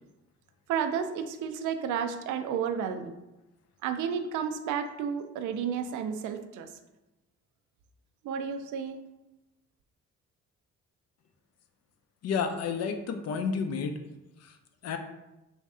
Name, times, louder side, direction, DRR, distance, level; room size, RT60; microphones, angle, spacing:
voice 1, 0.7-3.1 3.8-6.7 8.2-9.0, right 7 dB, 75° right, 8 dB, 0.5 m, -32 dB
voice 2, 12.2-14.0 14.4-14.6 14.8-15.0, left 5 dB, 55° left, 7 dB, 0.5 m, -31 dB
3.2 x 2.7 x 3.5 m, 0.97 s
cardioid pair, 90°, 30 cm